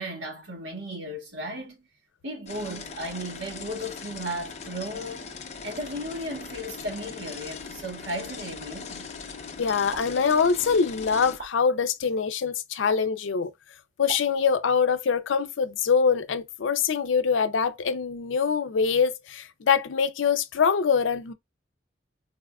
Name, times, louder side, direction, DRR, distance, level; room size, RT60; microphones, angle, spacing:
voice 1, 0.0-1.9 2.2-9.1, equal, 85° right, 1.7 m, -35 dB
sound 1, 2.5-11.4, left 5 dB, 35° left, 0.6 m, -40 dB
voice 2, 9.6-13.5 14.0-21.3, left 6 dB, 90° left, 0.5 m, -24 dB
sound 2, 9.9-10.1 11.4-11.5 12.9-13.0 14.1-14.2, right 4 dB, 55° right, 1.3 m, -37 dB
4.1 x 2.3 x 2.3 m
head